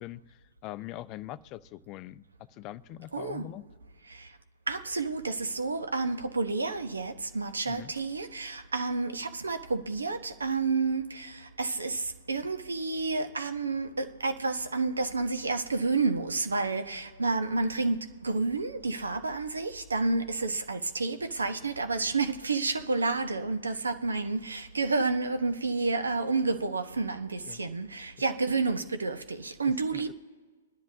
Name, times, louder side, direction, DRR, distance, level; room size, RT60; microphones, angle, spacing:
voice 1, 0.0-2.2 2.5-3.6 7.7-7.9 27.5-27.6 29.9-30.0, left 15 dB, 35° left, 0.4 m, -42 dB
voice 2, 3.1-3.5 4.7-11.0 11.6-11.9 12.3-18.0 18.2-30.1, right 3 dB, 85° right, 1.1 m, -30 dB
27.0 x 10.5 x 2.8 m
hypercardioid pair, 120°, 0 cm